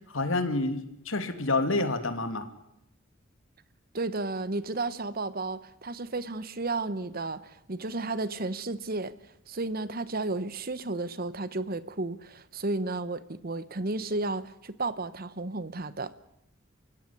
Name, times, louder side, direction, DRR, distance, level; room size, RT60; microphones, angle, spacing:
voice 1, 0.1-2.5, left 2 dB, 80° left, 2.7 m, -28 dB
voice 2, 3.9-9.1 9.5-16.1, right 2 dB, 45° right, 1.1 m, -33 dB
29.0 x 16.5 x 10.0 m
head